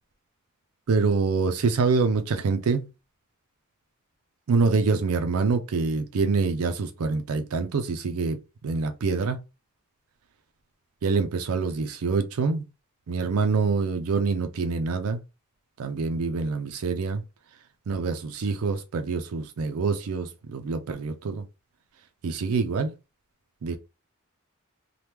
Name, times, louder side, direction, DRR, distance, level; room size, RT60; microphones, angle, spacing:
voice 1, 0.9-2.9 4.5-9.4 11.0-12.7 13.1-15.2 15.8-17.2 17.9-21.4 22.2-22.9 23.6-23.8, right 4 dB, 85° right, 0.4 m, -25 dB
2.9 x 2.2 x 3.3 m
head